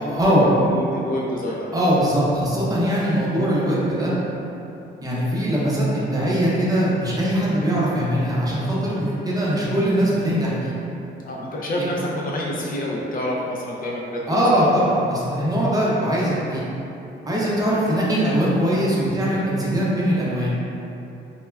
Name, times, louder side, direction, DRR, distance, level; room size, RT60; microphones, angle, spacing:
voice 1, 0.0-0.5 1.7-4.1 5.0-10.7 11.8-11.9 14.3-16.6 17.3-20.5, equal, 20° right, -7 dB, 0.7 m, -21 dB
voice 2, 0.6-1.8 11.3-14.4, left 1 dB, 45° left, -3 dB, 0.4 m, -28 dB
2.2 x 2.1 x 3.3 m, 2.8 s
cardioid pair, 90°, 20 cm